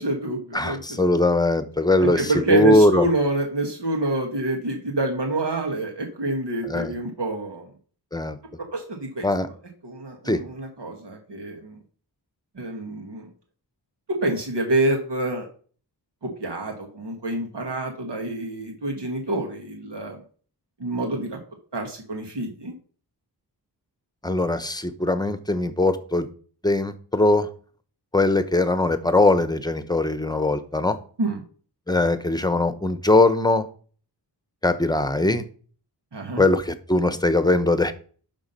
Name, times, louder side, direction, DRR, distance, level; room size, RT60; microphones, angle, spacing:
voice 1, 0.0-1.0 2.0-7.6 8.7-9.3 9.8-11.8 12.6-13.3 14.2-15.5 16.2-20.2 20.8-21.4 21.7-22.7 31.2-31.4 36.1-36.4, right 2 dB, 75° right, 1 dB, 1.7 m, -27 dB
voice 2, 0.5-3.0 6.6-7.0 8.1-8.4 9.2-9.5 10.3-10.4 24.2-26.3 26.6-27.5 28.1-31.0 31.9-33.7 34.6-35.5 36.4-37.9, left 2 dB, 10° left, 11 dB, 0.9 m, -21 dB
11.0 x 3.7 x 5.5 m, 0.43 s
wide cardioid pair, 70°, 42 cm